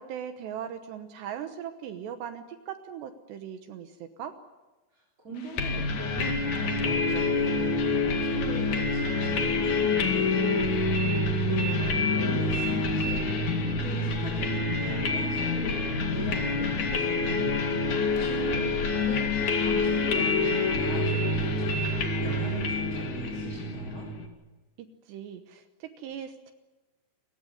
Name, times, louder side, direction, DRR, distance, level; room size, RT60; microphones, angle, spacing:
voice 1, 0.0-4.3 18.5-18.7 24.8-26.5, right 9 dB, 75° right, 8 dB, 2.7 m, -39 dB
voice 2, 4.9-18.7 19.0-24.1, right 1 dB, 20° right, -3 dB, 3.4 m, -40 dB
sound 1, 5.6-24.3, left 3 dB, 50° left, 2.8 m, -27 dB
28.5 x 16.0 x 9.8 m, 1.2 s
omnidirectional pair, 6.0 m